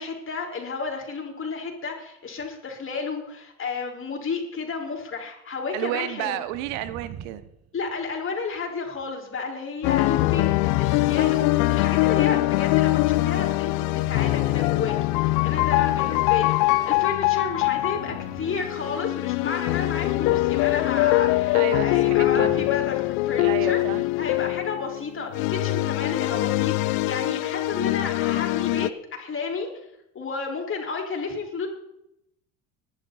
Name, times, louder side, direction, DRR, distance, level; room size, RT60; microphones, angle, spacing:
voice 1, 0.0-6.4 7.7-23.8 24.2-29.7 30.2-31.7, left 4 dB, 30° left, 1 dB, 5.3 m, -32 dB
voice 2, 5.7-7.4 15.8-16.2 21.5-22.7 23.4-24.0, right 13 dB, 70° right, 14 dB, 1.3 m, -31 dB
sound 1, 6.4-8.3 9.8-11.7 13.8-15.5 17.5-18.8 19.0-19.1, right 8 dB, 35° right, 1.5 m, -46 dB
sound 2, 9.8-28.9, left 19 dB, 65° left, 0.8 m, -23 dB
20.0 x 11.5 x 4.2 m, 0.81 s
hypercardioid pair, 80°, 41 cm